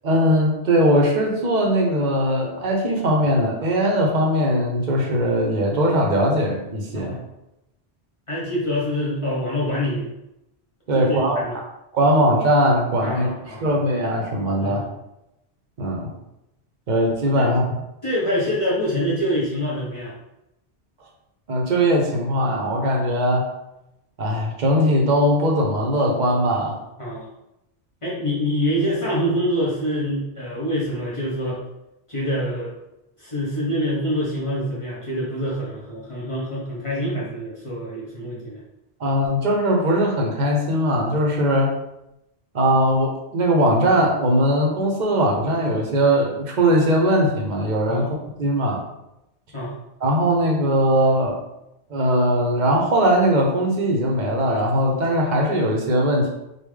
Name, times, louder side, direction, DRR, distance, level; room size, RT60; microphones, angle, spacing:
voice 1, 0.0-7.2 10.9-11.5 11.9-14.8 15.8-16.1 16.9-17.6 21.5-23.5 24.2-26.8 39.0-41.7 42.5-48.8 50.0-51.4 51.9-56.3, equal, 50° right, 0 dB, 0.7 m, -20 dB
voice 2, 8.3-10.1 10.9-11.6 13.0-13.7 14.6-14.9 17.3-17.5 18.0-20.1 27.0-27.3 28.0-31.6 32.1-32.7 33.2-38.6 47.9-48.1 49.5-49.7, equal, 35° left, -6 dB, 0.7 m, -25 dB
3.5 x 2.4 x 3.2 m, 0.88 s
omnidirectional pair, 1.1 m